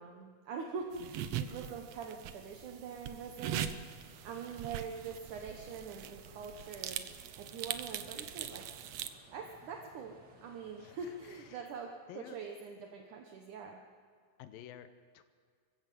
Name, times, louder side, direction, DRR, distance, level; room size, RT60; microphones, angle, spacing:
voice 1, 0.0-3.7 4.0-8.7 9.3-13.8, right 5 dB, 65° right, 2 dB, 2.5 m, -44 dB
sound 1, 0.9-9.1, right 10 dB, 90° right, 1.4 m, -42 dB
sound 2, 3.7-11.6, right 2 dB, 35° right, 2.0 m, -61 dB
voice 2, 10.8-11.7 12.1-12.4 14.4-15.2, left 11 dB, 80° left, 11 dB, 2.5 m, -52 dB
24.5 x 15.5 x 7.7 m, 2.1 s
omnidirectional pair, 4.1 m